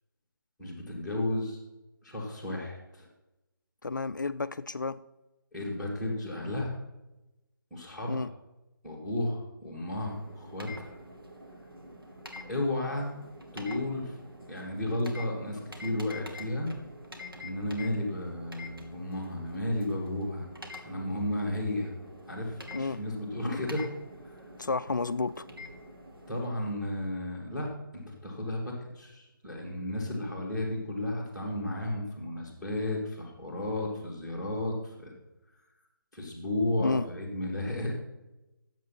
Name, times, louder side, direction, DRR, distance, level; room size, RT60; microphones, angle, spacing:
voice 1, 0.6-1.6 2.0-3.1 5.5-6.8 7.7-8.3 8.8-10.9 12.5-13.1 13.5-14.1 14.5-16.7 17.4-20.5 20.9-21.9 22.3-23.9 24.2-24.4 26.3-27.7 27.9-35.1 36.1-37.9, left 1 dB, ahead, -9 dB, 1.8 m, -33 dB
voice 2, 3.8-5.0 8.1-8.3 22.7-23.0 24.6-25.5 36.8-37.1, left 3 dB, 60° left, 15 dB, 0.4 m, -31 dB
sound 1, 10.0-26.5, left 1 dB, 85° right, 2.0 m, -47 dB
9.3 x 7.5 x 5.7 m, 0.99 s
figure-of-eight pair, 155°, 12 cm